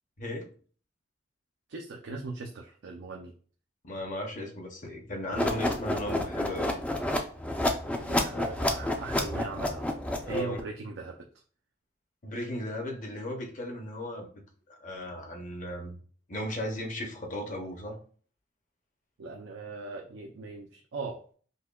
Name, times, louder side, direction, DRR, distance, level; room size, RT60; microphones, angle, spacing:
voice 1, 0.2-0.5 3.8-6.8 10.2-10.6 12.2-14.3 14.7-16.0 16.3-18.0, left 1 dB, 40° left, 2 dB, 0.7 m, -36 dB
voice 2, 1.7-3.3 8.0-9.9 10.2-11.3 19.2-21.3, right 3 dB, 80° right, 1 dB, 0.4 m, -39 dB
sound 1, 5.3-10.6, left 1 dB, 5° left, 0.3 m, -30 dB
5.3 x 2.2 x 2.3 m, 0.43 s
head